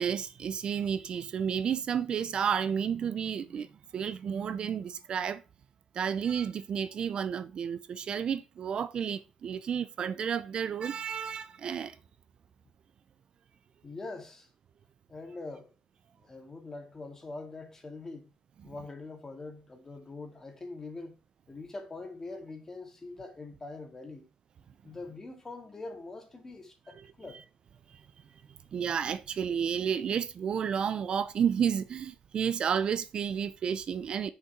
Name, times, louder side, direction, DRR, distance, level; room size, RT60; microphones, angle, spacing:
voice 1, 0.0-3.7 3.9-5.4 5.9-12.0 27.9-28.0 28.7-34.3, right 7 dB, 50° right, 0.6 m, -31 dB
voice 2, 13.8-14.5 15.1-15.7 16.2-18.3 18.6-21.2 21.5-24.3 24.8-27.4, left 3 dB, 25° left, 2.1 m, -43 dB
6.7 x 5.4 x 4.7 m
cardioid pair, 145°, 2 cm